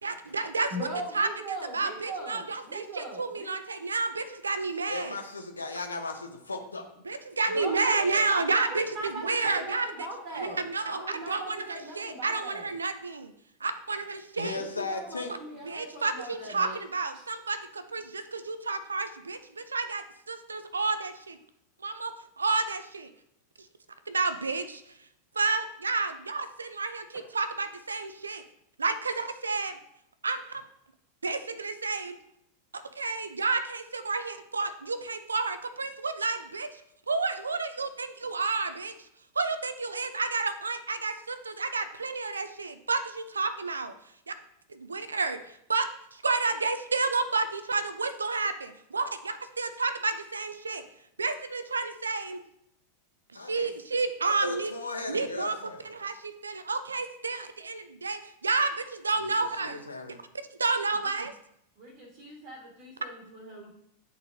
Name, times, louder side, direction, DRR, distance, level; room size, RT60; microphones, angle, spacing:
voice 1, 0.0-0.9 1.1-5.2 7.0-9.9 10.3-13.3 13.6-14.6 15.6-21.4 21.8-23.1 24.1-24.9 25.3-28.4 28.8-29.8 30.2-30.6 31.2-32.2 33.0-36.8 37.1-39.1 39.3-43.9 44.3-44.4 44.7-50.9 51.2-52.4 53.3-54.7 55.1-55.6 55.8-59.8 60.1-60.2 60.6-61.3, right 4 dB, 75° right, 11 dB, 0.5 m, -30 dB
voice 2, 0.7-3.5 7.5-10.6 10.9-12.7 14.5-16.8 61.8-63.7, right 1 dB, 45° right, -1 dB, 1.5 m, -40 dB
voice 3, 4.9-6.8 14.4-15.3 53.3-53.7 54.4-55.8 59.2-59.3 59.6-60.2, left 3 dB, 80° left, 4 dB, 0.7 m, -36 dB
9.3 x 4.0 x 2.6 m, 0.75 s
figure-of-eight pair, 90°, 0 cm